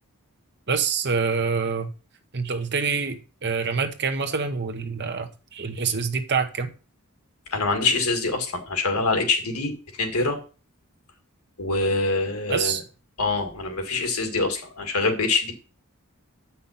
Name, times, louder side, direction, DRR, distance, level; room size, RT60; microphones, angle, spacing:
voice 1, 0.7-1.9 2.3-6.7 12.5-12.8, right 5 dB, 50° right, 1.0 m, -26 dB
voice 2, 7.5-9.7 10.0-10.4 11.6-12.8 13.2-15.5, left 3 dB, 85° left, 2.0 m, -24 dB
8.1 x 5.8 x 5.6 m
head